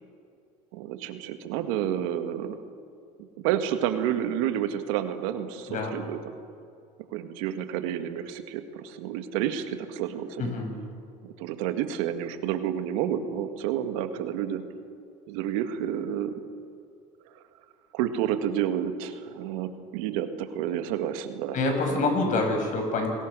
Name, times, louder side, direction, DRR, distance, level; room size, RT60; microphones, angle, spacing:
voice 1, 0.7-2.6 3.4-6.3 7.1-10.5 11.2-14.6 15.3-16.3 17.9-21.6 21.9-22.0, right 10 dB, 85° right, 8 dB, 1.9 m, -30 dB
voice 2, 10.4-10.7 21.5-23.1, left 3 dB, 50° left, 4 dB, 6.3 m, -26 dB
28.0 x 20.5 x 6.3 m, 2.4 s
supercardioid pair, 105°, 17 cm